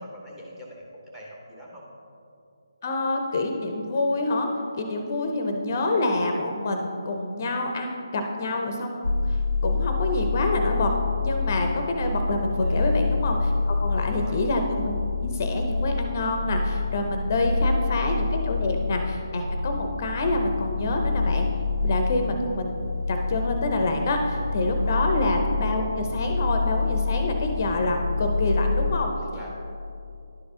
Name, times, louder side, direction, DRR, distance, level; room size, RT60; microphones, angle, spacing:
voice 1, 0.0-1.8 12.6-13.0 14.0-14.4 17.4-17.8 24.8-25.1 29.3-29.5, equal, 10° right, -4 dB, 1.1 m, -43 dB
voice 2, 2.8-4.5 4.8-10.9 11.2-14.9 15.2-21.5 21.8-22.8 23.1-29.1, left 2 dB, 40° left, 4 dB, 0.6 m, -27 dB
sound 1, 9.0-28.9, left 3 dB, 85° left, 0.4 m, -27 dB
10.5 x 4.7 x 3.6 m, 2.6 s
figure-of-eight pair, 155°, 2 cm